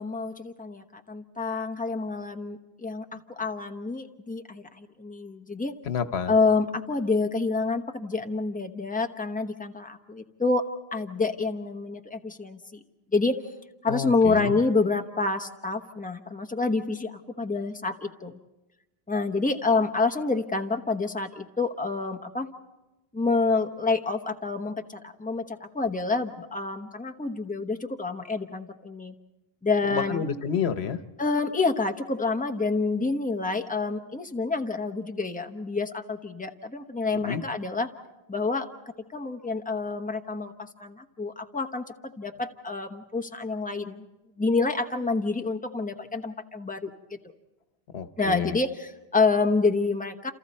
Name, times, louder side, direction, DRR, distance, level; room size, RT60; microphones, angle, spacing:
voice 1, 0.0-5.7 6.3-12.8 13.1-13.4 13.8-18.3 19.1-22.5 23.1-29.1 29.6-30.2 31.2-37.9 38.3-38.7 39.1-41.8 42.2-44.0 44.4-46.9 48.2-50.3, left 3 dB, 10° left, 5 dB, 1.0 m, -28 dB
voice 2, 5.8-6.3 13.9-14.6 29.9-31.0 37.2-37.4 47.9-48.6, left 7 dB, 90° left, 11 dB, 1.2 m, -29 dB
28.5 x 28.0 x 4.3 m, 1.0 s
omnidirectional pair, 1.0 m